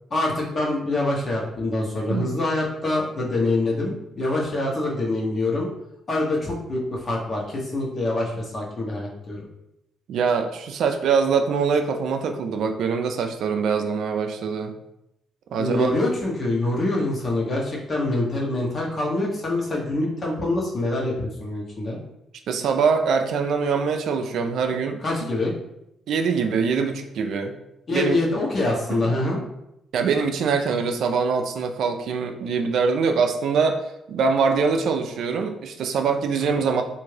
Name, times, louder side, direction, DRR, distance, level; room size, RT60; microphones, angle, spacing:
voice 1, 0.1-5.7 6.1-9.4 15.6-22.0 25.0-25.5 27.9-29.4 36.3-36.6, left 2 dB, 40° left, -2 dB, 1.0 m, -25 dB
voice 2, 10.1-14.7 15.5-15.9 22.5-25.0 26.1-27.5 27.9-28.2 29.9-33.8 34.1-36.8, right 5 dB, 70° right, 5 dB, 0.4 m, -23 dB
3.4 x 2.6 x 3.2 m, 0.83 s
cardioid pair, 90°, 0 cm